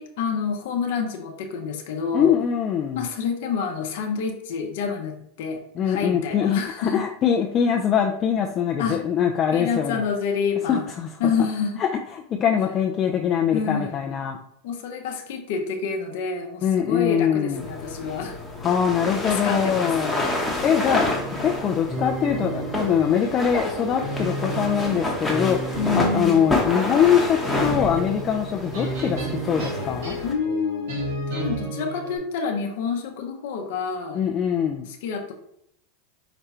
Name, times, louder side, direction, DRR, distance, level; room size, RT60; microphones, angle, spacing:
voice 1, 0.0-2.4 2.9-7.0 8.8-9.0 9.5-10.9 11.2-11.8 13.5-14.2 14.6-18.4 19.2-19.9 25.8-26.4 30.2-34.2 34.9-35.3, left 5 dB, 70° left, 2 dB, 0.7 m, -28 dB
voice 2, 2.1-3.0 5.8-10.0 10.7-11.3 11.8-14.4 16.6-17.6 18.6-20.3 20.6-21.1 21.4-30.2 34.1-34.9, left 8 dB, 35° left, 2 dB, 0.4 m, -23 dB
sound 1, 17.5-30.3, left 1 dB, 5° left, 0.9 m, -29 dB
sound 2, 21.1-32.2, right 1 dB, 80° right, 1.6 m, -32 dB
5.0 x 2.2 x 4.2 m, 0.73 s
supercardioid pair, 125°, 0 cm